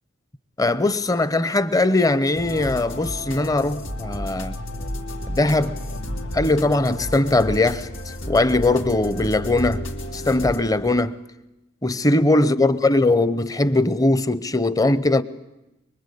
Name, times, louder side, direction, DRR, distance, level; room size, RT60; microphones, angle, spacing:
voice 1, 0.6-4.6 5.3-5.8 6.3-9.8 10.1-11.2 11.8-15.2, left 2 dB, 20° left, 0.8 m, -20 dB
sound 1, 2.4-10.6, left 1 dB, 85° left, 3.0 m, -32 dB
24.5 x 23.5 x 8.4 m
head